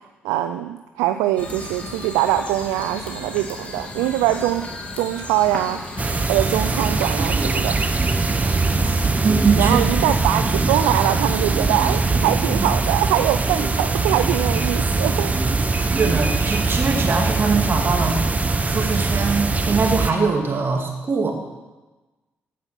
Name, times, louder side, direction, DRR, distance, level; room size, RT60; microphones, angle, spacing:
voice 1, 0.2-4.7 5.0-5.8 6.3-7.8 9.6-15.3, right 13 dB, 80° right, 9 dB, 0.4 m, -22 dB
sound 1, 1.4-19.2, left 1 dB, 25° left, 2.6 m, -36 dB
sound 2, 6.0-20.1, right 3 dB, 25° right, 0.9 m, -21 dB
voice 2, 9.1-9.9 16.0-18.2 18.6-21.3, right 4 dB, 45° right, 2 dB, 2.3 m, -22 dB
15.5 x 5.6 x 6.0 m, 1.2 s
hypercardioid pair, 45°, 5 cm